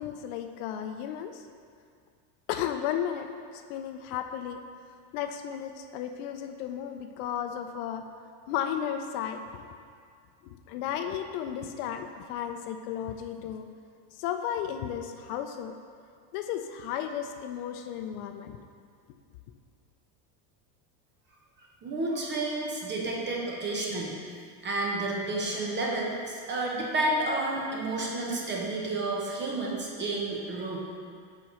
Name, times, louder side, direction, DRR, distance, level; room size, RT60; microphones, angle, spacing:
voice 1, 0.0-1.4 2.5-3.3 3.7-4.6 5.1-8.0 8.5-9.7 10.5-13.7 14.2-15.7 16.3-18.6, left 9 dB, 65° left, 7 dB, 0.5 m, -34 dB
voice 2, 21.8-24.1 24.6-30.8, right 2 dB, 20° right, -2 dB, 0.8 m, -30 dB
4.7 x 4.4 x 5.6 m, 2.2 s
supercardioid pair, 140°, 49 cm